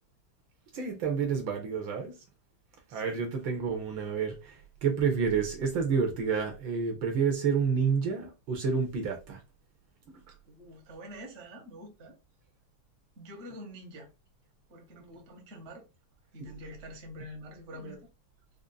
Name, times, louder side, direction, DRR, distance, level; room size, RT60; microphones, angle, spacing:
voice 1, 0.7-2.2 2.9-9.4 17.9-18.0, right 6 dB, 70° right, 1.3 m, -29 dB
voice 2, 10.5-12.2 13.2-14.1 14.7-15.8 16.3-18.1, equal, 45° right, 1.0 m, -46 dB
5.1 x 2.4 x 2.2 m
omnidirectional pair, 2.3 m